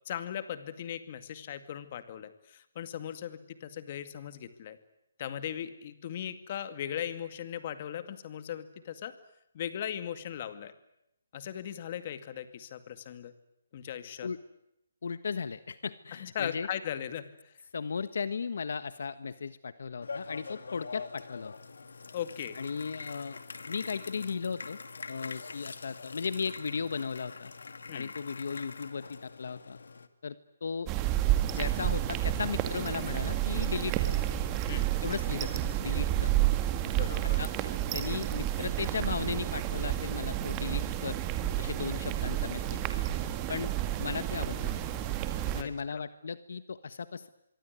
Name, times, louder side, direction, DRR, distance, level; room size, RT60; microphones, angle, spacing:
voice 1, 0.1-4.8 5.2-9.1 9.5-10.7 11.3-13.3 13.7-14.3 16.2-17.5 22.1-22.6 27.9-28.1 34.7-34.9 36.8-37.4 45.5-46.0, left 10 dB, 30° left, 12 dB, 2.1 m, -38 dB
voice 2, 15.0-16.7 17.7-21.5 22.5-24.8 25.1-27.5 27.9-29.8 30.2-30.4 30.6-30.9 31.5-34.1 35.0-36.3 37.4-37.5 37.9-41.2 41.6-42.8 43.5-43.7 44.0-44.8 45.5-47.3, left 5 dB, 65° left, 14 dB, 1.3 m, -36 dB
sound 1, 20.0-30.1, left 4 dB, 85° left, 2.5 m, -44 dB
sound 2, 30.9-45.6, right 13 dB, 15° right, 1.9 m, -30 dB
25.5 x 24.0 x 9.6 m, 0.81 s
hypercardioid pair, 170°, 0 cm